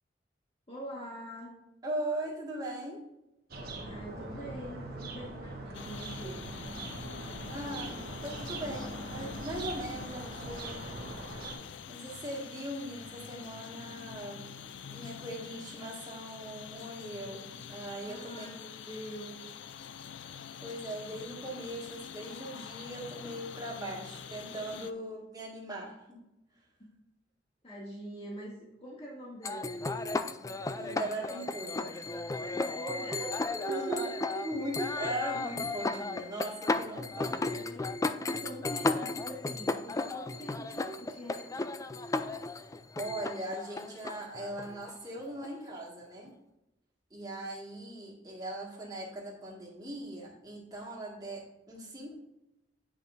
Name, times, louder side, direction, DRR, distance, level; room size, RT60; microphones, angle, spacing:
voice 1, 0.7-1.5 3.8-6.5 18.0-19.6 21.4-21.8 27.6-29.8 32.5-34.4 34.9-35.7 36.5-36.6 37.4-41.7, right 2 dB, 35° left, -5 dB, 2.1 m, -43 dB
voice 2, 1.8-3.0 7.5-10.9 11.9-14.5 14.9-18.6 20.6-26.2 30.7-32.2 32.6-32.8 33.7-34.1 34.4-37.4 43.0-46.3 47.1-52.1, right 1 dB, 20° right, -4 dB, 2.0 m, -40 dB
sound 1, 3.5-11.5, right 2 dB, 55° right, 1.3 m, -41 dB
sound 2, 5.7-24.9, left 7 dB, 85° left, 0.4 m, -46 dB
sound 3, 29.4-45.8, left 3 dB, 20° left, 0.3 m, -34 dB
9.1 x 5.5 x 2.6 m, 0.91 s
head